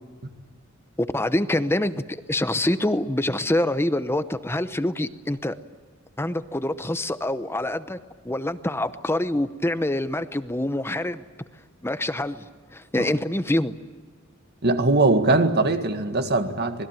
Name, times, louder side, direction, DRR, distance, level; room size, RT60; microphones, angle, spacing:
voice 1, 1.0-2.0 2.3-5.6 6.2-8.0 8.2-11.2 11.8-12.4 12.7-13.8, left 1 dB, 10° left, 0.8 m, -25 dB
voice 2, 14.6-16.9, right 2 dB, 50° right, 2.0 m, -21 dB
26.5 x 20.5 x 9.1 m
head